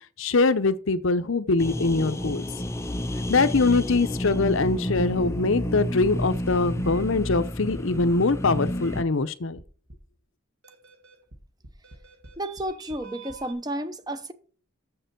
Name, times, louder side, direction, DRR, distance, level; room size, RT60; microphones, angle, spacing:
voice 1, 0.2-2.5 3.3-9.6, left 3 dB, 60° left, 0.7 m, -23 dB
sound 1, 1.6-9.0, left 1 dB, 15° left, 0.5 m, -30 dB
sound 2, 6.8-7.1 7.6-8.2 8.8-9.1 9.6-10.2 10.6-13.5, right 3 dB, 60° right, 1.8 m, -48 dB
voice 2, 12.4-14.3, right 1 dB, 20° right, 0.7 m, -32 dB
7.3 x 6.8 x 6.1 m
head